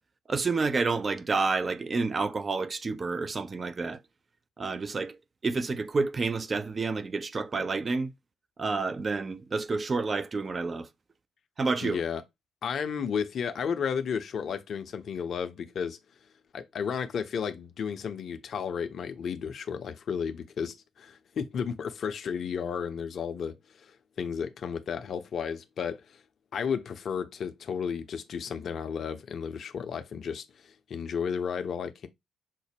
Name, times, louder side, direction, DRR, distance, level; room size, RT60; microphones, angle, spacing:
voice 1, 0.3-4.0 4.6-5.2 5.4-8.1 8.6-10.9 11.6-12.0, right 4 dB, 35° right, 0.4 m, -29 dB
voice 2, 11.8-12.2 12.6-16.0 16.5-26.2 26.5-32.1, left 7 dB, 50° left, 0.5 m, -33 dB
5.8 x 2.1 x 3.3 m
figure-of-eight pair, 45°, 0 cm